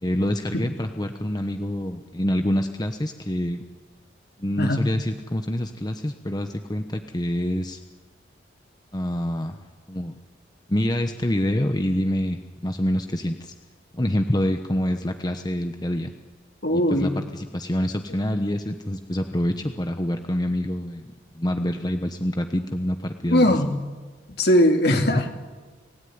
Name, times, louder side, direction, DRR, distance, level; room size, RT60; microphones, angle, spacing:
voice 1, 0.0-3.6 4.4-7.8 8.9-9.5 9.9-10.1 10.7-13.5 13.9-16.1 16.7-21.1 21.3-23.5 24.9-25.3, left 1 dB, 20° left, 6 dB, 1.0 m, -26 dB
voice 2, 4.6-4.9 16.6-17.2 23.3-23.8 24.4-25.2, left 1 dB, 60° left, 4 dB, 2.6 m, -19 dB
28.0 x 17.0 x 9.6 m, 1.4 s
head